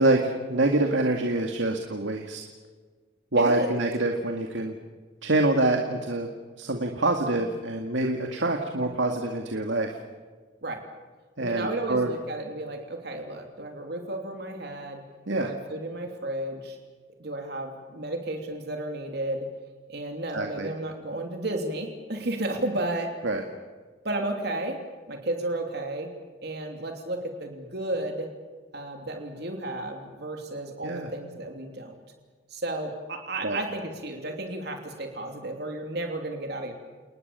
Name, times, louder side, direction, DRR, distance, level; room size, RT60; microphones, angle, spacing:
voice 1, 0.0-2.4 3.3-4.8 5.2-6.3 6.6-9.9 11.4-12.1 15.3-15.5 20.3-20.7 23.2-23.4 30.8-31.1 33.4-33.6, right 2 dB, 90° right, 3 dB, 2.2 m, -25 dB
voice 2, 3.4-3.7 10.6-10.8 11.4-15.0 15.4-16.8 17.2-19.5 19.9-23.1 24.0-24.8 25.1-26.1 26.4-28.3 28.7-32.0 32.5-36.7, right 1 dB, 60° right, 3 dB, 3.1 m, -33 dB
30.0 x 20.0 x 7.0 m, 1.4 s
head